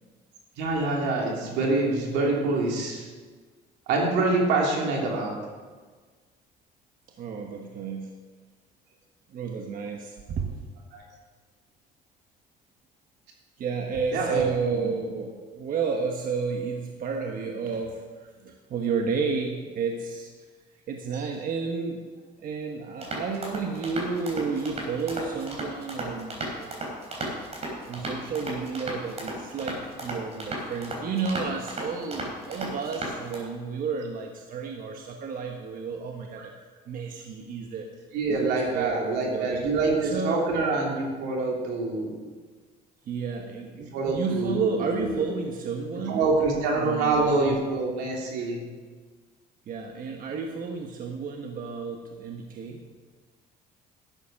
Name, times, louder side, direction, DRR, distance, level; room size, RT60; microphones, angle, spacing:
voice 1, 0.6-3.1 3.9-5.4 10.9-11.0 14.1-14.8 38.1-42.1 43.9-44.5 45.0-45.3 46.1-48.6, right 3 dB, 90° right, -2 dB, 3.2 m, -26 dB
voice 2, 7.2-8.1 9.3-10.6 13.6-20.3 20.9-22.0 22.4-27.0 27.9-36.5 36.9-37.9 38.3-39.6 40.0-40.4 43.1-46.3 46.8-47.6 49.7-52.8, right 5 dB, 55° right, 2 dB, 1.2 m, -31 dB
sound 1, 23.0-33.4, right 1 dB, 40° right, 3.9 m, -35 dB
12.0 x 8.3 x 6.4 m, 1.5 s
cardioid pair, 110°, 17 cm